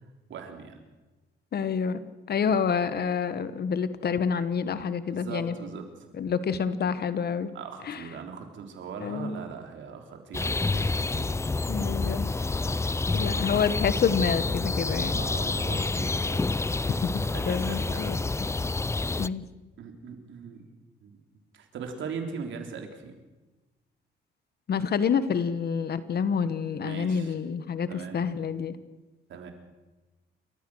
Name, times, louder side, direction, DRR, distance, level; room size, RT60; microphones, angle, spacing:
voice 1, 0.3-0.8 2.5-2.6 5.1-5.9 7.5-11.5 15.1-16.5 17.3-18.1 19.8-20.6 21.0-21.2 21.5-23.1 26.8-27.3 27.9-28.3 29.3-29.5, right 6 dB, 70° right, 4 dB, 3.7 m, -40 dB
voice 2, 1.5-2.0 2.3-5.5 6.2-7.5 7.9-8.0 9.0-9.4 11.7-12.3 13.1-15.2 17.0-17.1 17.4-18.2 19.2-19.5 24.7-28.8, left 6 dB, 55° left, 14 dB, 1.4 m, -28 dB
sound 1, 10.3-19.3, left 3 dB, 15° left, 0.5 m, -28 dB
29.5 x 14.0 x 6.4 m, 1.2 s
cardioid pair, 90°, 20 cm